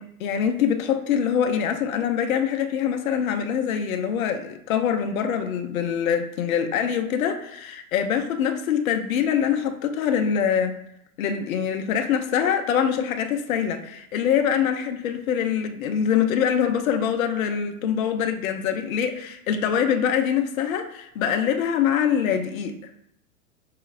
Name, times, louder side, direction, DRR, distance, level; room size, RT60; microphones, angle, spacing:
voice 1, 0.2-10.8 11.2-22.8, left 8 dB, 70° left, 6 dB, 0.7 m, -24 dB
5.7 x 2.9 x 2.4 m, 0.76 s
hypercardioid pair, 100°, 44 cm